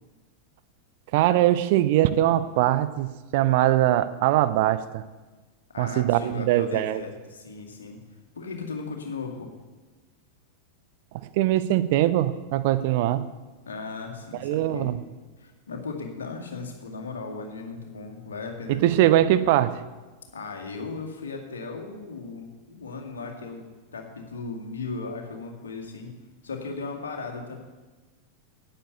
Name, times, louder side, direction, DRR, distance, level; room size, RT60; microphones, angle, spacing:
voice 1, 1.1-5.0 5.8-7.0 11.1-13.3 14.4-15.0 18.8-19.8, right 13 dB, 50° right, 13 dB, 0.6 m, -22 dB
voice 2, 5.7-8.0 8.3-9.5 13.7-15.0 15.4-18.9 20.3-26.1 26.4-27.6, left 4 dB, 65° left, 1 dB, 2.2 m, -37 dB
9.8 x 9.1 x 8.3 m, 1.2 s
figure-of-eight pair, 90°, 0 cm